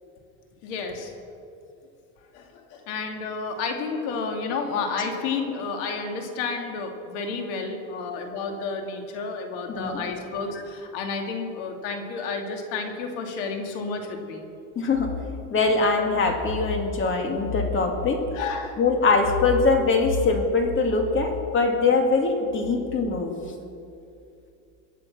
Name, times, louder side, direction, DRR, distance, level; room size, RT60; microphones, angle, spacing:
voice 1, 0.6-1.1 2.3-14.5 18.3-18.8, left 4 dB, 85° left, 4 dB, 2.4 m, -31 dB
voice 2, 9.7-10.1 14.8-15.1 15.5-18.2 18.8-23.4, left 3 dB, 35° left, 4 dB, 2.2 m, -22 dB
23.0 x 8.4 x 6.1 m, 2.6 s
cardioid pair, 135°, 35 cm